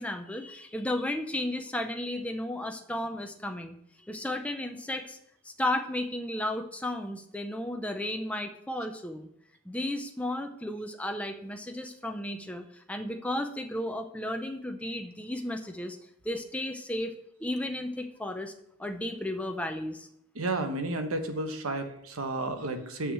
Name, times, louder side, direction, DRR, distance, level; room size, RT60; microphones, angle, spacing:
voice 1, 0.0-3.8 4.1-5.2 5.4-9.3 9.7-16.0 16.2-17.1 17.4-18.5 18.8-20.1, left 1 dB, 5° left, 4 dB, 0.5 m, -34 dB
voice 2, 20.3-23.1, right 2 dB, 85° right, 6 dB, 1.1 m, -32 dB
6.3 x 6.1 x 7.2 m, 0.75 s
head